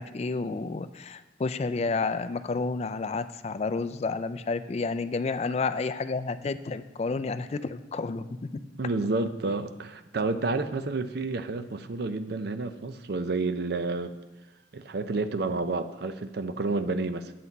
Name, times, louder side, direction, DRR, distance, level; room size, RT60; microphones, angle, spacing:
voice 1, 0.0-8.5, left 4 dB, 35° left, 11 dB, 0.3 m, -30 dB
voice 2, 8.8-14.2 14.7-17.3, right 3 dB, 55° right, 10 dB, 0.5 m, -30 dB
9.4 x 7.9 x 4.1 m, 1.1 s
head